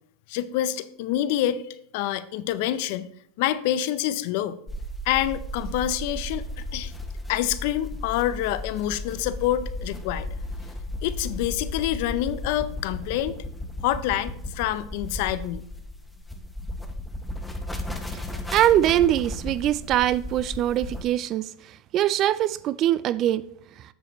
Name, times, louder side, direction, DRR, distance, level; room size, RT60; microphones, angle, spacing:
voice 1, 0.3-1.6 1.9-3.1 3.4-4.6 5.1-6.9 7.3-10.3 11.0-13.4 13.8-15.6, left 12 dB, 65° left, 0.5 m, -27 dB
sound 1, 4.7-21.0, left 1 dB, 10° left, 0.9 m, -35 dB
voice 2, 18.5-23.4, right 12 dB, 45° right, 0.4 m, -23 dB
8.1 x 7.5 x 3.1 m
supercardioid pair, 110°, 0 cm